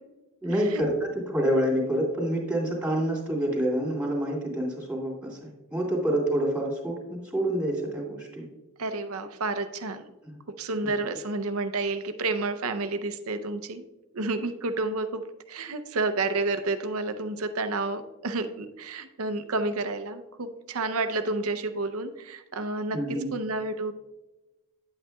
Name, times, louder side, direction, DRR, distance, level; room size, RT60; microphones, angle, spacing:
voice 1, 0.4-8.4 10.8-10.9 22.9-23.3, right 1 dB, 5° right, -3 dB, 2.3 m, -27 dB
voice 2, 8.8-10.0 10.6-13.8 14.1-23.0 23.3-23.9, right 3 dB, 70° right, 9 dB, 0.6 m, -30 dB
9.5 x 8.6 x 2.3 m, 1.1 s
head